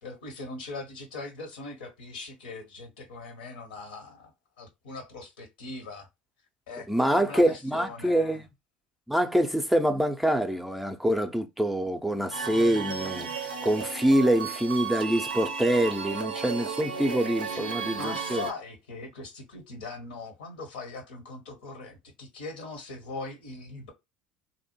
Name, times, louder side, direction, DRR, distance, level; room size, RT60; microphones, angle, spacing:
voice 1, 0.0-4.3 4.6-6.1 6.7-8.4 17.5-23.9, left 3 dB, 75° left, 0.8 m, -41 dB
voice 2, 6.9-8.5 9.1-13.3 13.6-18.4, right 1 dB, 5° right, 0.4 m, -25 dB
sound 1, 12.3-18.5, right 6 dB, 85° right, 0.5 m, -34 dB
2.7 x 2.0 x 2.7 m
figure-of-eight pair, 65°, 5 cm